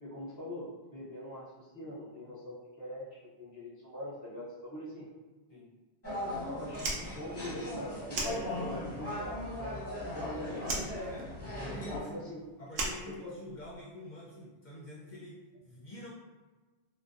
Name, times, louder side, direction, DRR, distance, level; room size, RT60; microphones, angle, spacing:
voice 1, 0.0-5.1 6.4-10.6 11.9-12.4 13.1-13.5, left 1 dB, 20° right, -9 dB, 0.5 m, -43 dB
sound 1, 6.0-12.0, left 1 dB, 15° left, 0.7 m, -38 dB
Fire, 6.7-9.0 9.2-10.2 10.6-13.8, right 2 dB, 70° right, 0.8 m, -38 dB
voice 2, 11.7-12.2 12.6-16.1, left 1 dB, 50° left, -7 dB, 0.6 m, -47 dB
2.6 x 2.0 x 2.4 m, 1.3 s
omnidirectional pair, 1.1 m